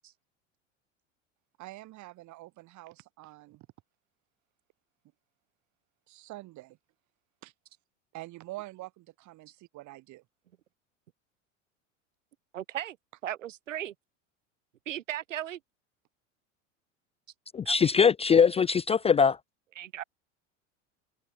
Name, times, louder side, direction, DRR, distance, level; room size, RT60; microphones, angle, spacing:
voice 1, 1.6-3.7 6.1-6.8 7.4-7.5 8.1-10.2, right 18 dB, 50° right, 3.6 m, -46 dB
voice 2, 12.5-13.0 13.2-13.9 14.9-15.6 17.6-17.9 19.8-20.0, right 12 dB, 75° right, 4.9 m, -36 dB
voice 3, 17.5-19.4, left 6 dB, 15° left, 0.5 m, -22 dB
hypercardioid pair, 85°, 38 cm